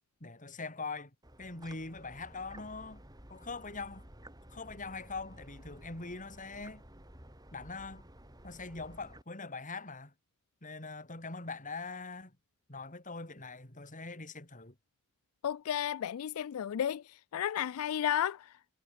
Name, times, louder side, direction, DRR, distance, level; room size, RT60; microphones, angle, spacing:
voice 1, 0.2-1.1 1.4-3.0 3.3-4.1 4.5-6.8 7.5-8.0 8.4-10.1 10.6-12.4 12.7-14.7, left 3 dB, 35° left, 4.6 m, -42 dB
sound 1, 1.2-9.2, right 1 dB, 20° right, 5.8 m, -54 dB
voice 2, 15.4-18.5, left 9 dB, 75° left, 0.4 m, -33 dB
head